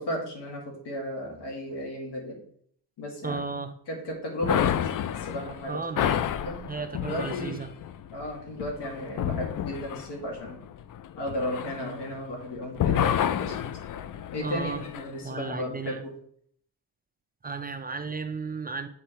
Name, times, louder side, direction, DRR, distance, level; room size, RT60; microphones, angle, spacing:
voice 1, 0.0-2.4 3.0-3.4 3.9-5.8 6.2-6.6 7.0-7.6 8.1-10.6 11.1-13.6 14.3-16.1, left 1 dB, 75° left, 0 dB, 2.4 m, -34 dB
voice 2, 3.2-3.7 5.7-6.2 6.7-7.7 14.4-14.8 15.2-16.0 17.4-18.9, right 4 dB, 20° right, 8 dB, 0.5 m, -34 dB
sound 1, 4.4-12.4 12.7-15.1, left 10 dB, 50° left, 0.5 m, -30 dB
7.7 x 3.9 x 4.5 m, 0.62 s
cardioid pair, 90°, 41 cm